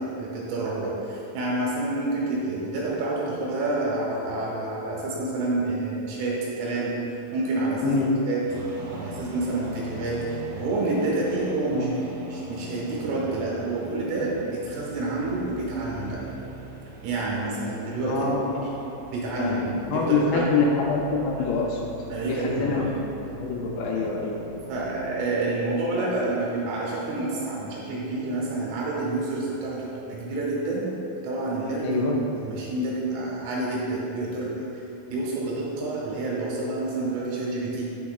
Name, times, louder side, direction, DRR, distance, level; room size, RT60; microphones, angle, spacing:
voice 1, 0.0-7.0 7.3-8.4 8.9-11.9 12.3-16.3 17.0-18.3 18.6-18.7 19.1-20.6 22.1-22.9 23.9-24.1 24.7-31.0 31.2-32.1 32.4-34.7 35.1-38.0, right 2 dB, 90° right, -5 dB, 3.9 m, -28 dB
sound 1, 8.5-25.2, right 1 dB, 75° right, 1.5 m, -41 dB
voice 2, 18.0-18.7 19.4-21.8 22.3-22.9 23.4-24.4 31.8-32.1, left 4 dB, 80° left, -1 dB, 2.6 m, -25 dB
9.4 x 6.2 x 2.3 m, 2.8 s
omnidirectional pair, 5.5 m